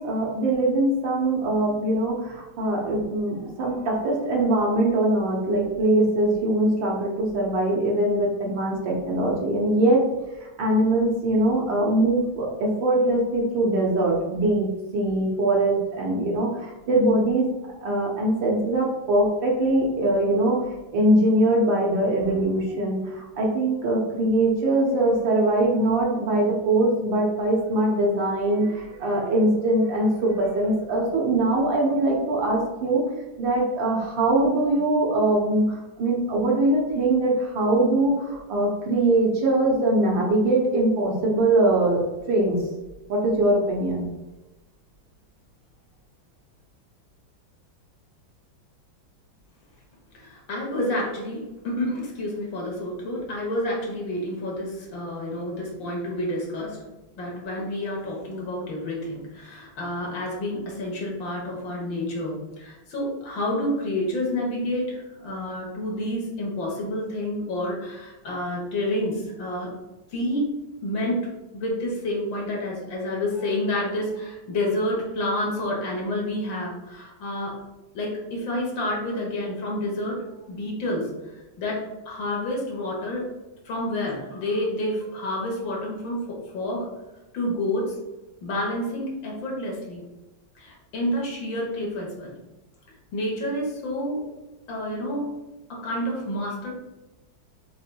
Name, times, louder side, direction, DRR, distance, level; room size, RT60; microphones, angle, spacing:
voice 1, 0.0-10.0 10.4-14.7 14.9-17.5 17.8-20.6 20.9-33.0 33.4-42.0 42.3-42.6 43.1-44.1, right 1 dB, 70° right, -2 dB, 1.7 m, -22 dB
voice 2, 50.1-56.8 57.2-69.7 70.1-70.5 70.8-77.6 77.9-81.1 81.6-83.3 83.7-86.9 87.3-88.0 88.4-90.0 90.6-92.4 93.1-94.2 94.7-95.3 95.7-96.7, left 1 dB, 70° left, -2 dB, 1.9 m, -29 dB
5.7 x 3.7 x 2.2 m, 1.0 s
omnidirectional pair, 2.2 m